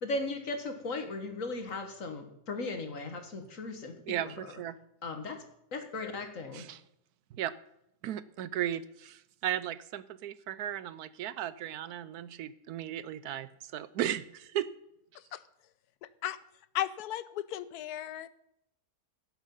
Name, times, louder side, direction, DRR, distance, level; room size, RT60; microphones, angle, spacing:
voice 1, 0.0-3.9 4.2-4.5 5.0-5.4 5.7-6.7, left 2 dB, 55° left, 6 dB, 1.9 m, -37 dB
voice 2, 4.1-4.8 6.5-6.8 7.3-7.5 8.0-14.7, right 11 dB, 75° right, 16 dB, 1.1 m, -36 dB
voice 3, 16.7-18.3, left 12 dB, 80° left, 16 dB, 1.1 m, -35 dB
16.5 x 7.3 x 5.5 m, 0.81 s
omnidirectional pair, 1.7 m